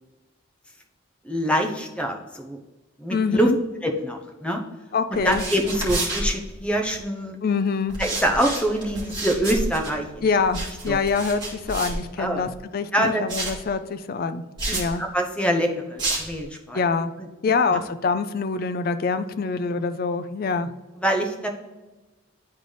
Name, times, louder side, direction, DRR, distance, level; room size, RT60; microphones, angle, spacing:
voice 1, 1.2-2.6 3.0-3.5 3.8-4.6 5.1-7.4 8.0-10.2 10.9-11.0 12.2-12.4 12.9-13.2 14.7-16.9 17.2-17.3 17.7-17.8 21.0-21.5, equal, 5° left, 2 dB, 0.7 m, -25 dB
voice 2, 3.1-3.6 4.9-5.4 7.4-8.0 10.2-14.4 14.7-15.0 16.7-17.1 17.4-20.7, left 4 dB, 45° left, 11 dB, 0.4 m, -25 dB
sound 1, 5.1-7.0 7.9-12.6 13.3-13.7 14.6-14.9 16.0-16.4, right 2 dB, 20° right, 1.9 m, -30 dB
10.5 x 3.9 x 3.3 m, 1.2 s
head